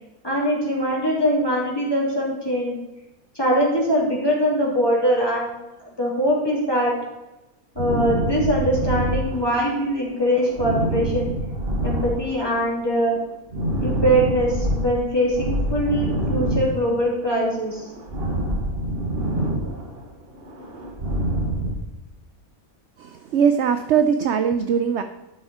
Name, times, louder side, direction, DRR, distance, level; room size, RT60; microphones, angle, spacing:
voice 1, 0.2-2.8 3.3-6.9 7.7-11.3 11.8-13.2 13.8-17.9, equal, 15° left, -5 dB, 3.3 m, -22 dB
sound 1, 7.8-9.9 10.2-12.7 13.0-14.9 15.3-17.2 17.5-20.1 20.3-21.7, right 1 dB, 40° right, 1.8 m, -26 dB
voice 2, 23.0-25.0, right 7 dB, 65° right, 8 dB, 0.7 m, -20 dB
12.0 x 7.3 x 4.3 m, 1.0 s
omnidirectional pair, 1.6 m